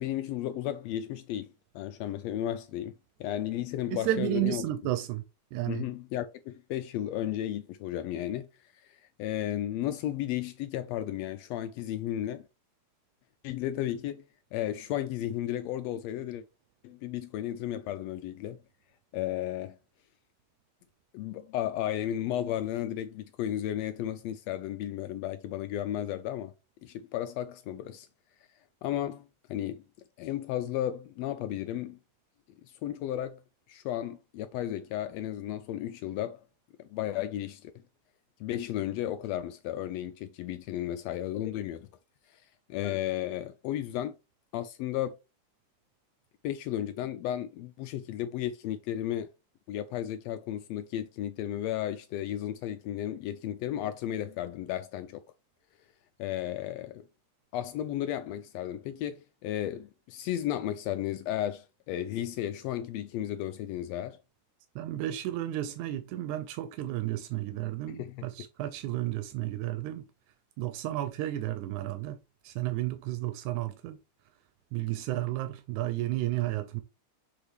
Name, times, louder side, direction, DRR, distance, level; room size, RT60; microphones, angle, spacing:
voice 1, 0.0-2.9 3.2-4.7 5.7-8.5 8.7-12.5 13.4-14.2 14.5-16.4 16.8-18.6 19.1-19.8 21.1-26.5 26.8-28.1 28.8-29.8 30.2-32.0 32.6-33.4 33.7-36.4 36.8-37.7 38.4-41.9 42.3-42.4 42.7-44.2 44.5-45.1 46.4-49.3 49.7-55.2 56.2-57.1 57.5-64.2 67.9-68.3, left 12 dB, 80° left, 1.5 m, -34 dB
voice 2, 3.9-5.2 5.5-5.8 64.8-70.1 70.6-72.2 72.4-74.0 74.7-76.8, right 14 dB, 85° right, 2.0 m, -32 dB
7.0 x 3.9 x 3.4 m
omnidirectional pair, 3.3 m